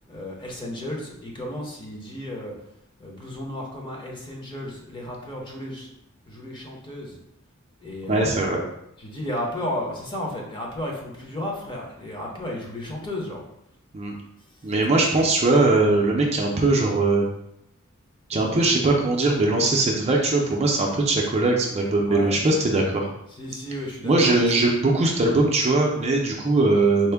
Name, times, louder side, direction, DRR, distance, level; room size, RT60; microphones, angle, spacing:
voice 1, 0.1-2.5 3.0-5.9 6.3-7.2 7.8-8.4 9.0-13.4 15.0-15.3 22.1-22.3 23.4-24.6, left 1 dB, 20° left, -1 dB, 0.7 m, -33 dB
voice 2, 8.1-8.6 13.9-14.1 14.6-17.2 18.3-23.1 24.0-27.1, right 2 dB, 30° right, 0 dB, 0.5 m, -20 dB
4.3 x 2.1 x 3.3 m, 0.78 s
head